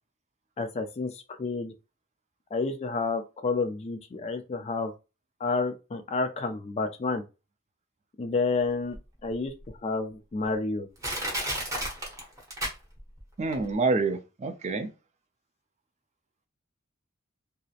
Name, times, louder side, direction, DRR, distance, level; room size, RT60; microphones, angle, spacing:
voice 1, 0.6-1.7 2.5-4.9 5.4-7.2 8.2-9.0 9.2-9.5 9.8-10.9, left 3 dB, 30° left, 0.3 m, -30 dB
Crushing, 8.9-9.0 9.7-9.8 10.4-10.5 11.0-13.2 13.5-13.6, equal, 15° right, 0.8 m, -32 dB
voice 2, 13.4-14.9, right 3 dB, 35° right, 0.4 m, -27 dB
2.7 x 2.0 x 2.4 m
head